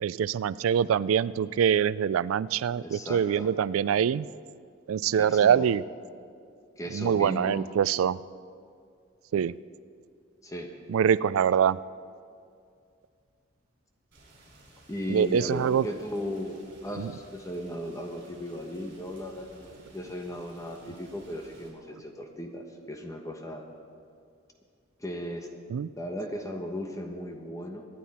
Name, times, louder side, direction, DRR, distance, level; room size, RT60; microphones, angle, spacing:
voice 1, 0.0-4.3 4.9-5.8 6.9-8.2 9.3-9.5 10.9-11.8 15.1-15.9 17.0-17.1 25.7-25.9, right 8 dB, 85° right, 19 dB, 0.3 m, -24 dB
voice 2, 2.8-3.5 5.1-5.7 6.8-7.7 10.4-10.7 14.9-23.6 25.0-25.5 26.0-27.9, equal, 15° left, 3 dB, 1.1 m, -36 dB
Rain, 14.1-21.7, right 2 dB, 55° right, 4.5 m, -56 dB
23.5 x 10.0 x 4.3 m, 2.3 s
head